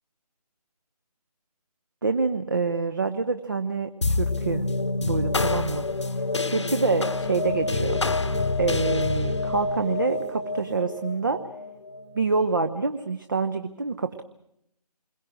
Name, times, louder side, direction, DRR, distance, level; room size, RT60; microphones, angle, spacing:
voice 1, 2.0-4.6 5.0-5.8 6.4-8.0 8.6-11.4 12.1-14.2, right 4 dB, 30° right, 8 dB, 0.9 m, -26 dB
sound 1, 4.0-12.7, left 3 dB, 45° left, 1.1 m, -27 dB
28.0 x 22.0 x 6.3 m, 0.76 s
figure-of-eight pair, 160°, 21 cm